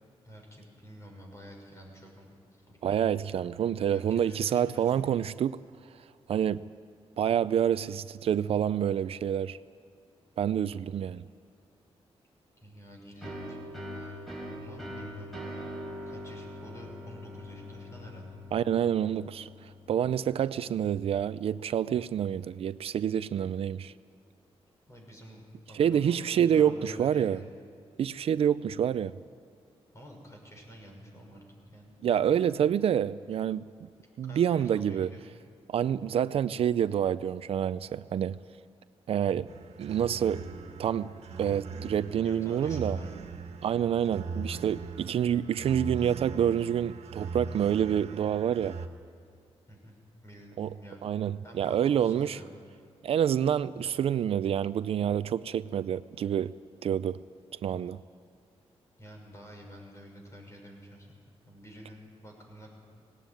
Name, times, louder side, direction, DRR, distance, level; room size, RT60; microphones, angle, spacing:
voice 1, 0.2-3.0 3.9-5.0 12.6-13.6 13.9-14.3 14.6-15.4 15.9-18.4 24.9-25.4 25.7-27.5 29.9-31.4 31.7-32.4 34.3-35.2 42.2-43.1 49.7-49.9 50.2-51.0 51.4-52.5 53.8-53.9 59.0-61.2 61.5-62.7, equal, 25° left, 6.2 m, -49 dB
voice 2, 2.8-5.6 6.3-6.6 7.2-9.6 10.4-11.2 18.5-19.5 19.9-23.9 25.7-27.4 28.0-29.1 32.0-33.7 34.2-35.1 35.7-38.4 39.1-39.5 39.8-40.4 40.8-41.1 41.4-43.0 43.6-48.8 50.6-50.7 51.0-52.4 53.0-56.5 56.8-57.2 57.6-58.0, right 9 dB, 65° right, 0.5 m, -27 dB
sound 1, 13.2-20.7, equal, ahead, 4.4 m, -42 dB
sound 2, 39.5-48.9, right 4 dB, 85° right, 1.5 m, -40 dB
18.5 x 18.5 x 9.2 m
wide cardioid pair, 125°, 11 cm